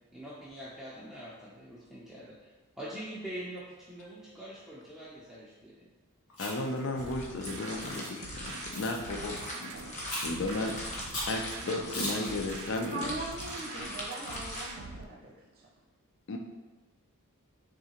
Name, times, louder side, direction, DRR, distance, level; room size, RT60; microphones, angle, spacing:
voice 1, 0.1-5.9, right 1 dB, ahead, -10 dB, 0.4 m, -44 dB
Chewing mastication, 6.3-6.8 7.4-8.1 8.7-9.0 10.1-10.4 11.1-11.4 11.9-12.3, left 1 dB, 80° left, 1.2 m, -37 dB
voice 2, 6.4-9.7 10.1-13.1 16.3-16.4, left 2 dB, 55° left, 3 dB, 0.4 m, -34 dB
sound 1, 6.6-14.6, left 1 dB, 30° left, 0.8 m, -42 dB
sound 2, 7.0-15.0, right 4 dB, 70° right, 0.4 m, -45 dB
voice 3, 12.8-15.7, right 2 dB, 45° right, -3 dB, 0.8 m, -41 dB
3.7 x 3.2 x 2.8 m, 1.2 s
head